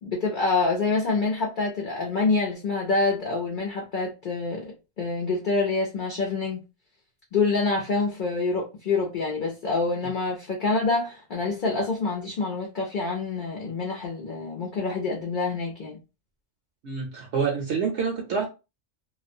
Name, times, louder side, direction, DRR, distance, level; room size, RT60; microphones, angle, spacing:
voice 1, 0.0-6.6 7.3-16.0, left 3 dB, 55° left, 0.5 m, -26 dB
voice 2, 16.8-18.5, right 5 dB, 65° right, 0.8 m, -27 dB
2.4 x 2.1 x 2.6 m
omnidirectional pair, 1.4 m